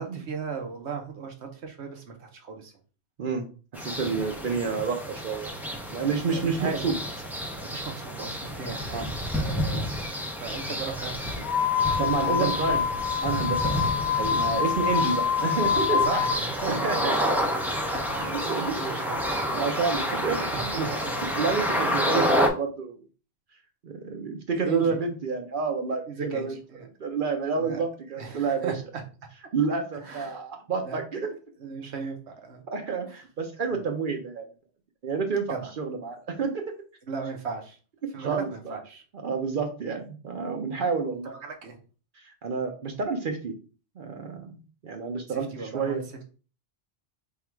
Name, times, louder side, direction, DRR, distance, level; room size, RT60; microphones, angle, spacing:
voice 1, 0.0-2.7 6.3-6.8 7.6-11.5 11.8-12.8 15.9-17.0 17.9-19.6 20.5-21.2 21.8-21.9 24.6-25.0 26.1-26.9 27.5-27.8 28.2-28.7 30.0-30.4 30.8-31.0 31.6-32.7 33.7-33.8 35.5-35.7 37.1-37.8 38.1-39.0 41.4-41.8 45.3-46.0, right 5 dB, 85° right, 3 dB, 1.2 m, -36 dB
sound 1, 3.7-22.5, equal, ahead, 0.4 m, -30 dB
voice 2, 3.7-5.5 5.9-6.9 8.9-9.1 9.7-9.9 10.2-10.3 12.0-12.8 13.2-16.2 16.7-17.6 18.2-18.9 19.5-21.0 21.3-23.0 23.8-26.5 27.0-28.7 29.5-31.3 32.7-34.4 35.0-36.6 38.0-38.8 39.2-41.3 42.1-43.5 44.0-46.1, right 5 dB, 55° right, 4 dB, 0.8 m, -29 dB
sound 2, 11.4-16.4, left 7 dB, 50° left, 0.5 m, -26 dB
3.6 x 2.4 x 4.5 m, 0.36 s
omnidirectional pair, 1.1 m